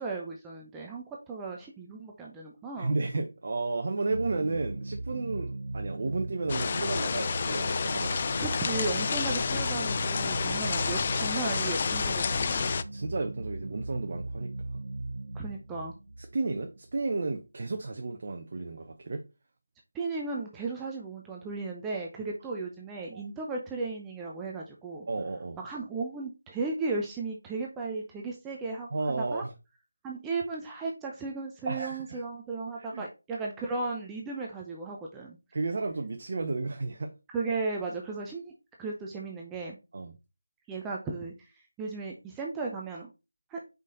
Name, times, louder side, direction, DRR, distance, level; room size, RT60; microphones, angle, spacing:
voice 1, 0.0-2.9 8.4-12.7 15.3-15.9 19.9-25.1 25.6-29.4 30.0-35.4 37.3-38.5 38.8-39.8 40.7-41.3 41.8-43.1 43.5-43.6, right 3 dB, 10° right, 0.7 m, -35 dB
voice 2, 2.8-8.2 12.9-14.5 16.2-19.2 23.1-23.3 25.1-25.6 28.9-29.5 31.6-32.2 32.8-33.0 35.5-37.1 39.9-40.1, right 3 dB, 40° right, 0.9 m, -32 dB
sound 1, 4.1-17.4, right 2 dB, 65° right, 0.9 m, -38 dB
sound 2, 6.5-12.8, left 5 dB, 30° left, 0.4 m, -29 dB
5.3 x 5.3 x 3.9 m
figure-of-eight pair, 165°, 0 cm